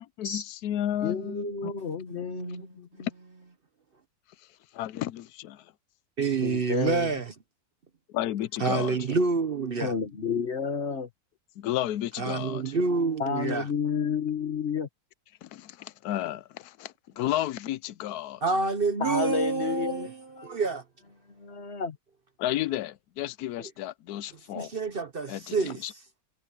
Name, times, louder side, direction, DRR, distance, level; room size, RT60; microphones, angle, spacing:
voice 1, 0.0-1.7 4.7-5.6 8.1-8.9 11.6-12.6 15.4-18.4 22.4-24.7 25.3-25.9, left 13 dB, 85° left, 1.1 m, -32 dB
voice 2, 1.0-3.1 6.4-7.1 9.8-11.1 13.2-14.9 19.0-20.1 20.4-20.5 21.3-22.0, left 6 dB, 50° left, 1.8 m, -31 dB
voice 3, 2.1-2.7 2.9-3.1 6.2-7.3 8.6-10.0 12.2-13.7 18.4-20.8 23.6-23.7 24.5-26.0, right 4 dB, 45° right, 0.9 m, -28 dB
omnidirectional pair, 1.6 m